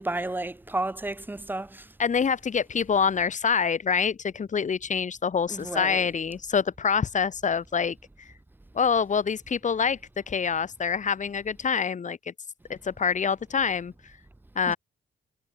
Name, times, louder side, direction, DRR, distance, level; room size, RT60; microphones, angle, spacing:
voice 1, 0.0-1.9 5.5-6.1 14.7-14.8, right 2 dB, 10° right, 1.0 m, -32 dB
voice 2, 2.0-7.9 8.7-10.0 10.3-12.3 12.7-13.9 14.5-14.8, left 6 dB, 40° left, 1.7 m, -26 dB
cardioid pair, 90°, 20 cm